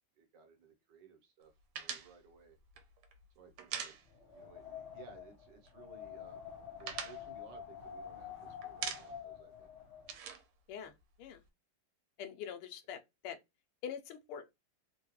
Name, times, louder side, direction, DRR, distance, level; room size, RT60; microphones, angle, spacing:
voice 1, 0.1-1.5 1.8-2.6 3.3-3.9 4.3-9.7, right 5 dB, 65° right, 1.3 m, -59 dB
sound 1, 1.7-4.5 4.8-5.0 5.3-6.0 6.3-8.3 8.6-9.4 9.6-11.5, right 7 dB, 90° right, 1.5 m, -44 dB
Wind, 4.1-10.1, left 8 dB, 55° left, 0.7 m, -48 dB
voice 2, 10.7-11.4 12.2-13.4 13.8-14.5, left 8 dB, 90° left, 1.5 m, -44 dB
3.7 x 2.2 x 2.9 m
omnidirectional pair, 2.4 m